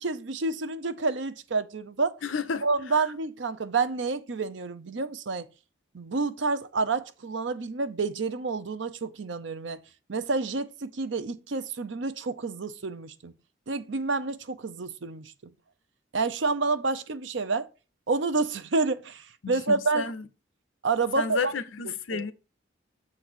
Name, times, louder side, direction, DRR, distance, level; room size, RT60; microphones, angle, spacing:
voice 1, 0.0-2.2 2.6-5.5 5.9-9.8 10.1-13.3 13.7-15.3 16.1-17.7 18.1-20.1 20.8-21.5 21.8-22.3, right 3 dB, 70° right, 0.6 m, -29 dB
voice 2, 2.2-2.6 19.4-20.2 21.2-22.3, left 5 dB, 80° left, 0.7 m, -31 dB
7.0 x 4.0 x 6.1 m
head